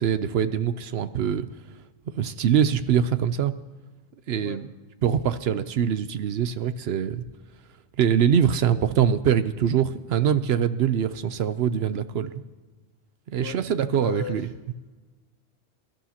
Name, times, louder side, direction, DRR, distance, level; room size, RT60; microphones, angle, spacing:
voice 1, 0.0-1.5 2.1-3.5 4.3-4.7 5.0-7.2 8.0-12.4 13.3-14.5, right 8 dB, 70° right, 13 dB, 0.8 m, -23 dB
voice 2, 13.4-14.4, left 6 dB, 65° left, 2 dB, 1.6 m, -36 dB
23.0 x 12.0 x 2.9 m, 1.3 s
omnidirectional pair, 1.1 m